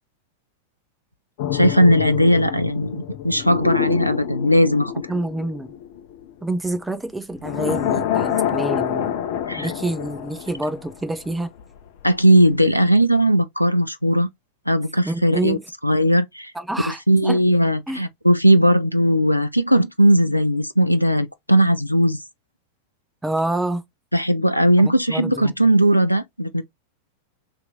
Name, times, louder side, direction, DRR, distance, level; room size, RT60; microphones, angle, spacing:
sound 1, 1.4-6.5 7.4-11.3 11.6-11.8, left 10 dB, 50° left, 0.6 m, -27 dB
voice 1, 1.5-4.9 9.5-9.7 12.0-14.3 14.7-15.6 15.8-16.5 16.9-22.2 24.1-26.6, equal, 90° left, 0.4 m, -18 dB
voice 2, 5.1-5.7 6.4-9.1 9.6-11.5 15.0-15.6 16.5-17.4 17.9-18.0 23.2-23.8 24.8-25.5, right 2 dB, 5° right, 0.6 m, -27 dB
3.0 x 2.6 x 3.6 m
figure-of-eight pair, 90°, 0 cm